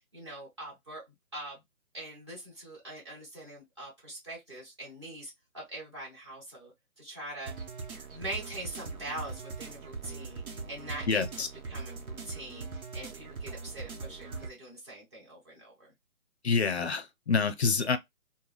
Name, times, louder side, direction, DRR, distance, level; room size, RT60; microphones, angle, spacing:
voice 1, 0.1-1.0 1.3-1.6 1.9-6.7 7.0-7.5 8.1-15.9, right 1 dB, 20° right, 1.2 m, -43 dB
sound 1, 7.5-14.5, right 4 dB, 80° right, 0.9 m, -41 dB
voice 2, 11.1-11.5 16.4-18.0, left 5 dB, 50° left, 0.5 m, -27 dB
3.3 x 2.2 x 2.2 m
hypercardioid pair, 175°, 42 cm